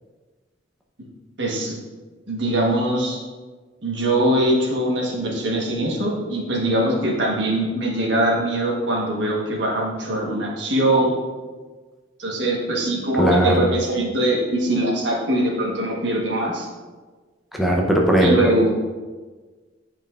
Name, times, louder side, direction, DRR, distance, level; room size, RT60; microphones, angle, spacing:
voice 1, 1.4-1.8 2.3-3.2 3.8-11.2 12.2-16.7 18.2-18.7, right 1 dB, 75° right, -2 dB, 1.3 m, -22 dB
voice 2, 13.2-13.7 17.5-18.5, right 1 dB, ahead, -2 dB, 0.7 m, -18 dB
9.2 x 5.3 x 2.5 m, 1.4 s
head